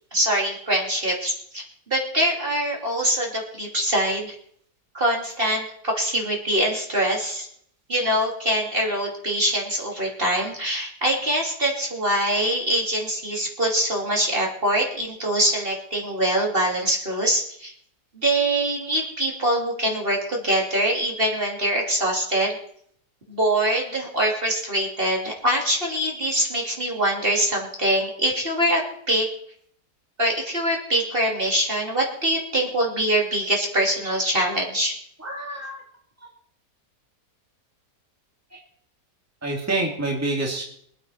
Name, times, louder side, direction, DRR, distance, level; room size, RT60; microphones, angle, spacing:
voice 1, 0.1-4.4 4.9-7.5 7.9-17.7 18.1-22.6 23.3-29.3 30.2-34.9, right 1 dB, 35° right, -1 dB, 3.1 m, -24 dB
voice 2, 35.2-35.8 38.5-38.6 39.4-40.6, right 2 dB, 10° right, -1 dB, 2.5 m, -27 dB
23.5 x 9.0 x 4.5 m, 0.64 s
omnidirectional pair, 1.7 m